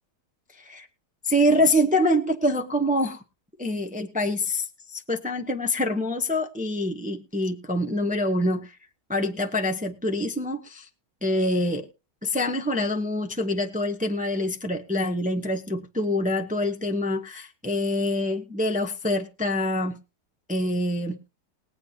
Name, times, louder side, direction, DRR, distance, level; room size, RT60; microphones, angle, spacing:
voice 1, 1.2-3.2 3.6-8.7 9.1-10.9 11.2-11.9 12.2-20.0 20.5-21.2, left 1 dB, 5° right, 5 dB, 0.8 m, -25 dB
21.0 x 8.3 x 2.9 m, 0.30 s
omnidirectional pair, 1.7 m